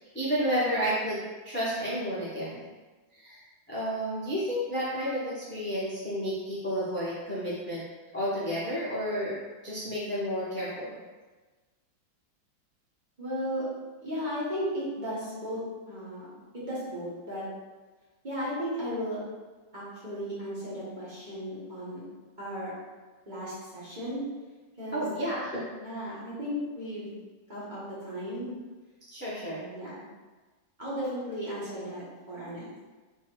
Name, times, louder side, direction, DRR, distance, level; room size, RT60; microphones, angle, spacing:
voice 1, 0.0-2.6 3.1-3.4 3.7-7.8 8.1-9.4 9.6-11.0 24.9-26.1 29.1-29.6, equal, 10° left, -9 dB, 0.5 m, -31 dB
voice 2, 13.2-13.6 14.0-15.6 15.9-17.5 18.2-19.2 19.7-22.0 22.4-22.7 23.2-24.2 24.8-25.0 25.8-27.1 27.5-28.5 29.5-29.9 30.8-32.6, equal, 25° right, -9 dB, 1.3 m, -35 dB
3.4 x 3.1 x 4.6 m, 1.3 s
omnidirectional pair, 2.1 m